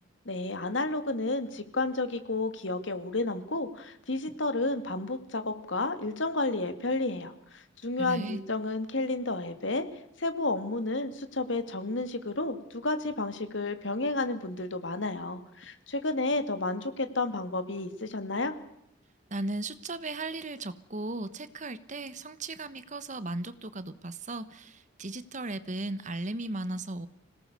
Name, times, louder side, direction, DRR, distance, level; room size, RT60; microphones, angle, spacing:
voice 1, 0.3-9.8 10.2-18.5, left 2 dB, 70° left, 9 dB, 2.3 m, -31 dB
voice 2, 8.0-8.4 19.3-27.1, right 2 dB, 40° right, 14 dB, 1.2 m, -36 dB
26.5 x 18.0 x 6.8 m, 0.79 s
head